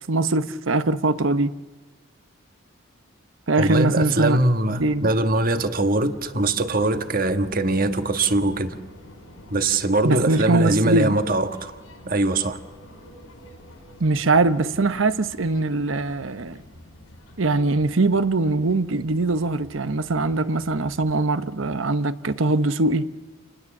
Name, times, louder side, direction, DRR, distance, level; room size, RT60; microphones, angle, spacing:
voice 1, 0.1-1.5 3.5-4.4 4.8-5.1 10.0-11.2 14.0-16.6 17.4-23.1, right 2 dB, 75° right, 1.0 m, -22 dB
voice 2, 3.6-8.8 9.5-11.8 12.0-12.6, right 2 dB, 45° right, 1.4 m, -22 dB
sound 1, 4.7-21.2, left 1 dB, 85° left, 5.3 m, -47 dB
29.0 x 20.0 x 7.3 m
head